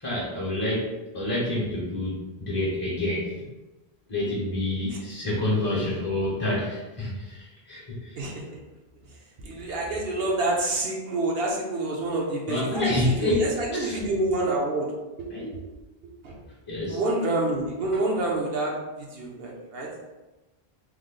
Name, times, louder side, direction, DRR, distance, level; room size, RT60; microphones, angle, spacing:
voice 1, 0.0-3.3 4.1-8.2 12.5-14.0 15.3-15.5 16.7-17.0 17.9-18.0, left 1 dB, 25° left, -6 dB, 0.6 m, -28 dB
voice 2, 9.4-14.9 15.2-15.3 16.0-16.4 16.9-18.7 19.0-19.9, right 2 dB, 70° right, -2 dB, 0.8 m, -27 dB
3.1 x 2.0 x 3.6 m, 1.1 s
omnidirectional pair, 1.1 m